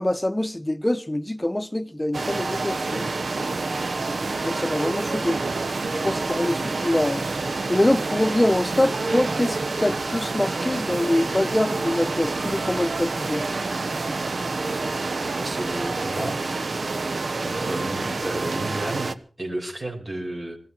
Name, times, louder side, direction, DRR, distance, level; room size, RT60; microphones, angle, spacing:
voice 1, 0.0-3.1 4.4-5.4 5.9-13.4, left 1 dB, 15° left, 1.1 m, -24 dB
sound 1, 2.1-19.1, right 3 dB, 60° right, 1.1 m, -28 dB
voice 2, 15.2-16.4 17.4-20.6, right 1 dB, 40° right, 5.9 m, -32 dB
19.5 x 16.0 x 4.5 m
wide cardioid pair, 60°, 0 cm